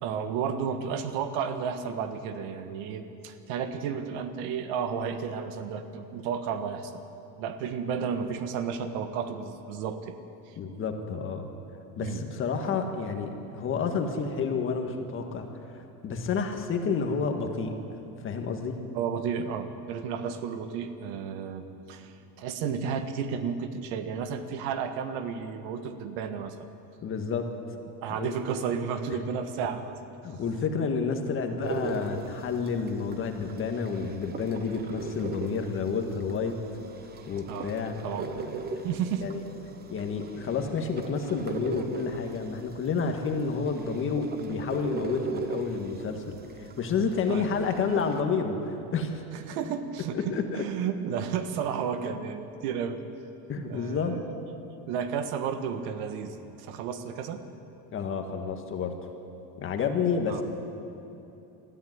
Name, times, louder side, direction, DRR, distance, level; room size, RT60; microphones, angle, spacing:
voice 1, 0.0-7.0 7.4-10.1 10.5-10.6 12.0-12.2 18.9-26.7 28.0-29.9 37.5-37.7 38.0-38.3 38.8-39.2 47.3-47.5 49.5-53.0 53.7-54.4 54.9-57.4 60.3-60.4, right 7 dB, 90° right, 9 dB, 1.6 m, -32 dB
voice 2, 10.6-11.5 12.0-15.4 15.7-17.7 18.2-18.8 27.0-27.5 28.1-28.4 29.1-29.2 30.2-36.5 37.3-38.0 38.4-38.8 39.2-39.4 39.9-49.2 50.1-50.6 53.5-54.2 57.9-58.9 59.6-60.4, left 5 dB, 30° left, 4 dB, 1.8 m, -30 dB
sound 1, 31.6-48.2, right 4 dB, 25° right, 1.1 m, -39 dB
20.5 x 14.0 x 9.6 m, 3.0 s
cardioid pair, 170°, 40 cm